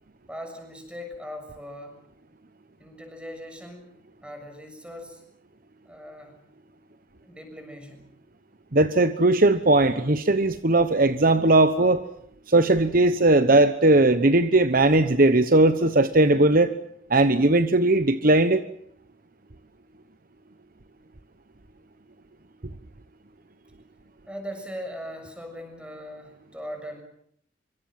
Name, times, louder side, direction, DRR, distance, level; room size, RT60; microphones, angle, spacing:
voice 1, 0.3-2.0 2.8-3.9 4.2-5.2 5.8-6.4 7.2-8.1 24.3-27.0, equal, 5° right, 5 dB, 6.8 m, -39 dB
voice 2, 8.7-12.0 12.5-16.7 17.1-18.6, right 2 dB, 45° right, 11 dB, 1.1 m, -19 dB
26.5 x 25.0 x 7.6 m, 0.68 s
head